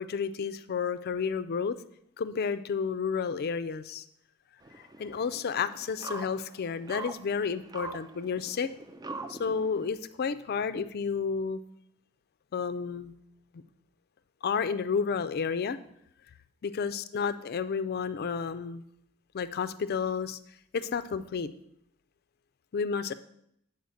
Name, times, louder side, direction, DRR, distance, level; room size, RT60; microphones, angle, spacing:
voice 1, 0.0-1.8 2.2-4.0 5.0-8.7 9.3-11.6 12.5-13.1 14.4-15.8 16.6-18.8 19.3-20.4 20.7-21.5 22.7-23.1, left 6 dB, 50° left, 12 dB, 0.4 m, -31 dB
sound 1, 4.6-9.9, right 3 dB, 20° right, 0.3 m, -43 dB
8.2 x 4.0 x 6.4 m, 0.74 s
head